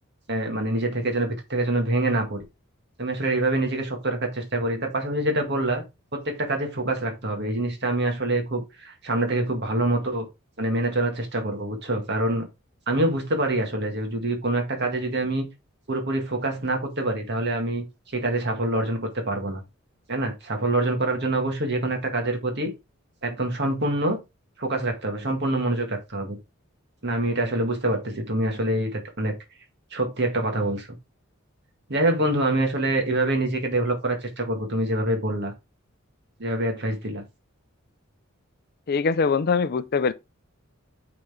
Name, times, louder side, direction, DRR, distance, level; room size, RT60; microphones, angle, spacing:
voice 1, 0.3-2.5 3.0-5.8 6.1-10.3 10.6-12.5 12.9-15.5 15.9-19.6 20.1-22.7 23.2-24.2 24.6-26.4 27.0-29.3 29.9-30.9 31.9-35.5 36.4-37.2, right 1 dB, 55° right, 1.9 m, -25 dB
voice 2, 38.9-40.1, left 5 dB, 45° left, 0.5 m, -22 dB
8.7 x 4.0 x 3.6 m
head